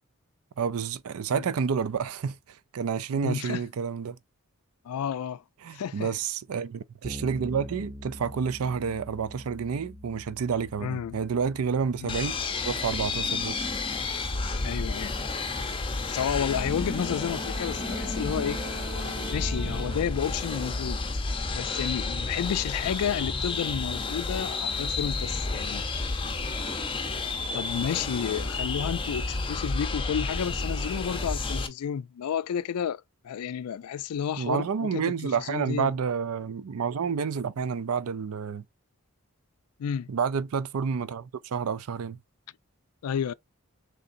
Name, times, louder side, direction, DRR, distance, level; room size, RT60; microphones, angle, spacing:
voice 1, 0.6-4.2 5.6-12.4 12.6-13.5 34.4-38.6 40.1-42.2, right 6 dB, 80° right, 0.4 m, -29 dB
voice 2, 3.1-3.6 4.8-5.4 5.7-6.1 10.8-11.2 12.0-12.1 14.6-15.2 16.1-18.6 19.3-21.0 21.5-25.8 27.5-35.9 39.8-40.1 43.0-43.3, left 8 dB, 90° left, 0.3 m, -31 dB
Bass guitar, 7.0-16.7, equal, 20° right, 0.7 m, -46 dB
sound 1, 12.1-31.7, left 3 dB, 25° left, 0.6 m, -31 dB
sound 2, 16.9-21.3, right 1 dB, 55° right, 0.8 m, -42 dB
3.8 x 3.2 x 2.5 m
head